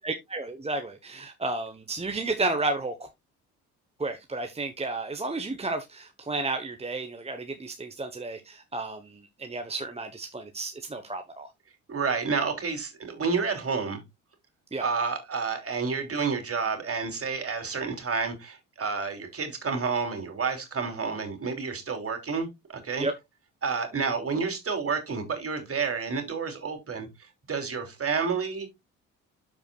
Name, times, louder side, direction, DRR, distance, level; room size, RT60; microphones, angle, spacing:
voice 1, 0.0-3.1 4.0-11.5 14.7-14.9 23.0-23.1, right 2 dB, 15° right, 1.1 m, -32 dB
voice 2, 11.9-14.0 14.8-23.1 23.6-27.1 27.5-28.7, right 5 dB, 40° right, 3.1 m, -30 dB
13.0 x 4.8 x 2.4 m
hypercardioid pair, 50°, 36 cm